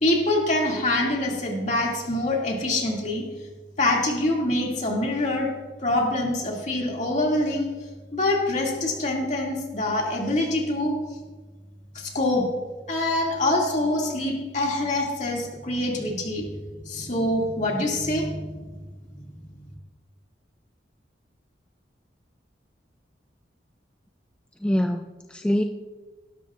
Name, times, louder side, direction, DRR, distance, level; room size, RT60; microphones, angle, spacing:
voice 1, 0.0-3.3 3.8-5.5 5.8-7.7 8.1-11.0 11.9-12.5 12.9-16.5 16.9-18.6, left 1 dB, 40° left, -1 dB, 2.4 m, -25 dB
voice 2, 24.6-25.6, equal, 5° left, 5 dB, 0.3 m, -24 dB
18.0 x 12.5 x 2.5 m, 1.3 s
head